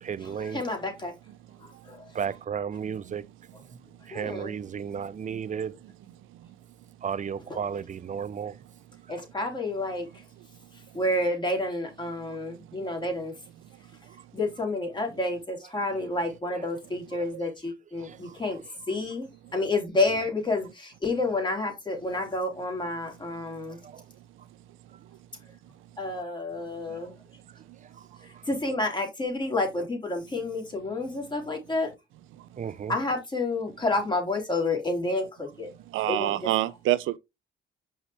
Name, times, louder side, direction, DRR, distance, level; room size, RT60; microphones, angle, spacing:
voice 1, 0.0-0.6 2.1-3.2 4.1-5.7 7.0-8.6 17.1-17.3 18.0-18.4 20.1-20.2 23.7-24.0 27.5-28.4 32.6-32.9, right 7 dB, 40° right, 0.6 m, -34 dB
voice 2, 0.5-1.1 1.6-2.0 4.1-4.5 9.1-10.1 10.9-13.3 14.3-18.6 18.9-23.8 26.0-27.1 28.2-31.9 32.9-35.7 36.1-36.5, left 2 dB, 25° left, 3.4 m, -29 dB
voice 3, 35.9-37.2, right 15 dB, 85° right, 0.6 m, -25 dB
5.7 x 5.5 x 3.4 m
cardioid pair, 90°, 20 cm